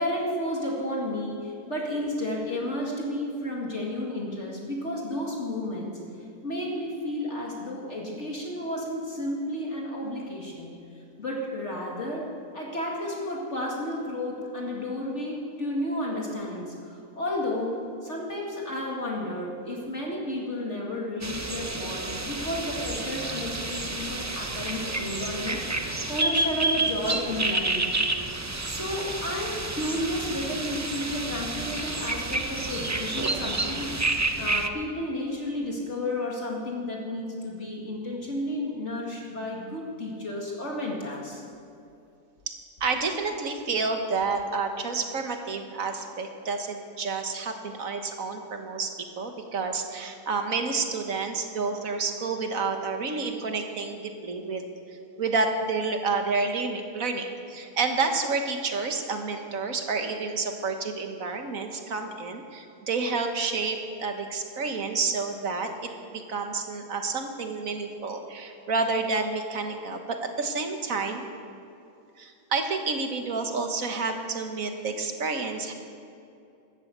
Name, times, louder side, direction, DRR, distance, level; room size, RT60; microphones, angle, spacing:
voice 1, 0.0-6.0 6.4-10.7 11.2-28.0 28.7-41.4, left 1 dB, 50° left, -2 dB, 2.4 m, -32 dB
sound 1, 21.2-34.7, right 2 dB, 25° right, 0.3 m, -29 dB
voice 2, 42.8-54.7 55.2-71.2 72.2-75.7, right 4 dB, 65° right, 5 dB, 1.8 m, -29 dB
13.5 x 12.5 x 8.1 m, 2.6 s
omnidirectional pair, 1.6 m